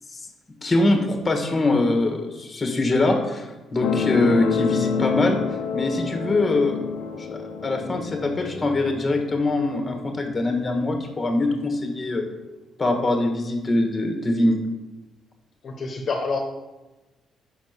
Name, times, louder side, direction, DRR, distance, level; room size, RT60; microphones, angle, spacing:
voice 1, 0.6-5.4 5.7-6.8 7.1-12.3 12.8-14.6, left 2 dB, 25° left, 4 dB, 1.5 m, -23 dB
sound 1, 3.8-10.9 11.7-11.8, left 6 dB, 85° left, 0.6 m, -29 dB
voice 2, 15.6-16.4, left 4 dB, 55° left, 2 dB, 1.1 m, -27 dB
5.3 x 5.2 x 6.6 m, 1.1 s
cardioid pair, 90°, 0 cm